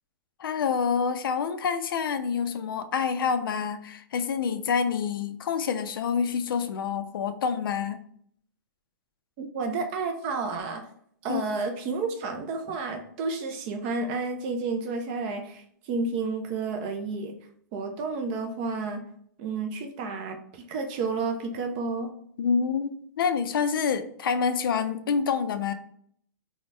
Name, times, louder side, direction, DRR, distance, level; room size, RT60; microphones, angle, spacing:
voice 1, 0.4-8.0 11.3-11.4 22.4-25.7, left 6 dB, 90° left, 9 dB, 0.4 m, -27 dB
voice 2, 9.4-10.8 11.2-17.3 17.7-19.0 19.4-22.1, right 4 dB, 30° right, 4 dB, 0.3 m, -31 dB
2.6 x 2.1 x 3.3 m, 0.65 s
hypercardioid pair, 155°, 11 cm